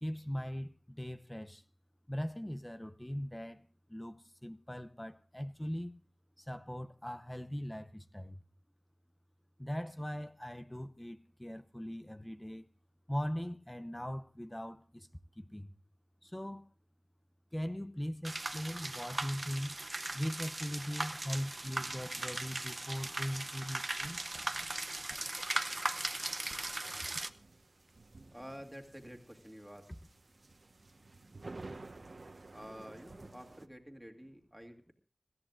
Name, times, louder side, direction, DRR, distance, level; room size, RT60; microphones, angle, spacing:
voice 1, 0.0-1.6 2.1-6.0 6.4-8.4 9.6-12.7 13.1-15.1 15.4-15.7 16.2-16.6 17.5-19.8 20.1-24.2 25.7-26.3, equal, 15° left, 0.7 m, -40 dB
sound 1, 18.2-27.3, right 2 dB, 40° right, 0.8 m, -38 dB
sound 2, 26.8-33.7, right 2 dB, 70° right, 1.2 m, -52 dB
voice 2, 28.3-29.9 32.5-34.9, equal, 5° right, 2.5 m, -50 dB
25.5 x 13.5 x 2.5 m
wide cardioid pair, 45°, 0 cm